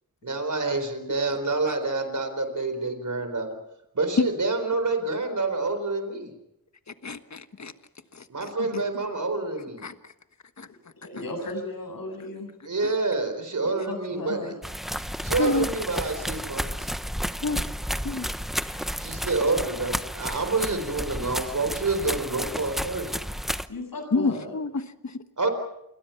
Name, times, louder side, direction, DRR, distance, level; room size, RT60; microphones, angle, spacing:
voice 1, 0.2-3.5 3.9-6.3 8.3-9.8 12.6-14.5 15.2-16.9 19.0-23.1 25.4-25.5, right 3 dB, 60° right, 8 dB, 4.4 m, -27 dB
voice 2, 7.0-7.7 8.1-8.5 9.8-9.9 10.6-10.7 12.8-12.9 14.9-15.1 15.4-15.7 17.4-17.6 18.0-18.3 18.6-18.9 24.1-25.2, left 3 dB, 55° left, 9 dB, 1.5 m, -28 dB
voice 3, 11.0-12.5 13.6-14.6 23.7-24.5, left 2 dB, 85° left, 4 dB, 7.5 m, -35 dB
sound 1, 14.6-23.7, equal, ahead, 0.9 m, -32 dB
28.5 x 21.5 x 5.9 m, 0.84 s
wide cardioid pair, 85°, 34 cm